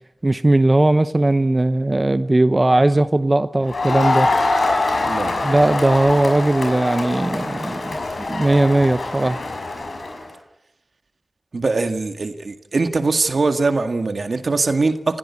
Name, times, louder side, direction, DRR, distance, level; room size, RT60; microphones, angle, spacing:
voice 1, 0.2-4.3 5.4-8.0 8.3-9.4, right 2 dB, 30° right, 0.8 m, -18 dB
Crowd, 3.7-10.2, left 2 dB, 90° left, 6.2 m, -23 dB
voice 2, 5.0-5.5 11.5-15.2, right 3 dB, 75° right, 2.0 m, -22 dB
29.5 x 16.0 x 8.6 m
wide cardioid pair, 70°, 0 cm